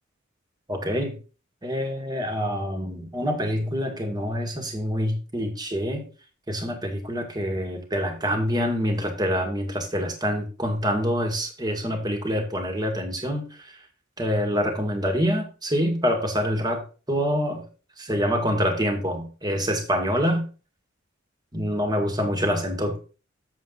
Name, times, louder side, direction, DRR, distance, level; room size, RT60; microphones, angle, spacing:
voice 1, 0.7-1.2 1.6-6.0 6.5-13.7 14.2-16.8 17.1-17.6 18.0-20.4 21.5-23.0, equal, 20° right, 4 dB, 1.9 m, -26 dB
7.4 x 7.4 x 3.9 m, 0.36 s
head